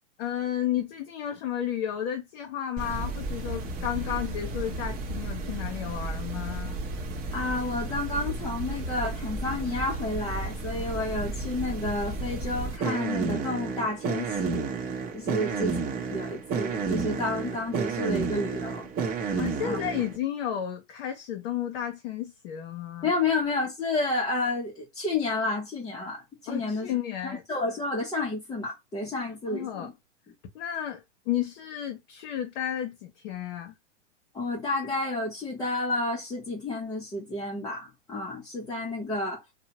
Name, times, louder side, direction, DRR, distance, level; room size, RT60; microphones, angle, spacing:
voice 1, 0.2-6.8 15.4-15.5 19.4-23.1 26.5-27.4 29.5-29.9 30.5-33.7, left 10 dB, 50° left, 0.7 m, -32 dB
sound 1, 2.8-20.2, right 4 dB, 25° right, 0.8 m, -32 dB
voice 2, 7.3-14.7 15.1-15.8 16.1-18.9 19.6-19.8 23.0-26.9 27.5-29.9 34.3-39.4, left 2 dB, 10° left, 0.5 m, -30 dB
2.7 x 2.1 x 2.8 m
hypercardioid pair, 120°, 36 cm